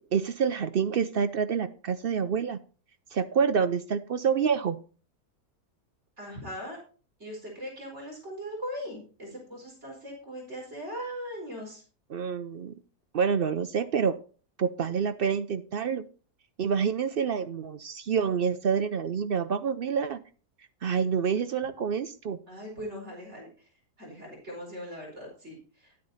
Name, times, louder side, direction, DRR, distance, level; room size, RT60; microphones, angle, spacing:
voice 1, 0.1-2.6 3.1-4.8 12.1-12.7 13.1-14.1 14.6-16.0 16.6-20.2 20.8-22.4, right 6 dB, 65° right, 11 dB, 0.5 m, -27 dB
voice 2, 6.2-6.8 7.2-11.8 22.5-23.5 24.0-25.9, equal, 45° right, -2 dB, 4.9 m, -39 dB
11.0 x 8.7 x 4.1 m, 0.38 s
omnidirectional pair, 1.7 m